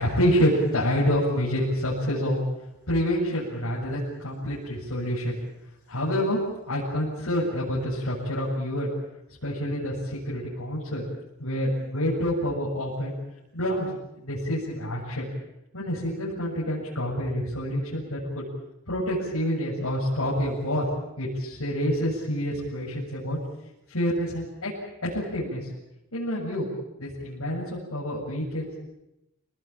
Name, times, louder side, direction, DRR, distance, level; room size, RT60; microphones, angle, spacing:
voice 1, 0.0-2.4 2.9-5.4 5.9-6.4 6.7-8.9 9.4-11.0 11.4-13.1 13.5-15.3 15.7-18.4 18.9-20.8 21.2-23.4 23.9-24.7 25.0-25.7 26.1-26.7 27.0-28.8, equal, 80° left, -6 dB, 7.6 m, -27 dB
29.0 x 19.0 x 8.9 m, 0.88 s
head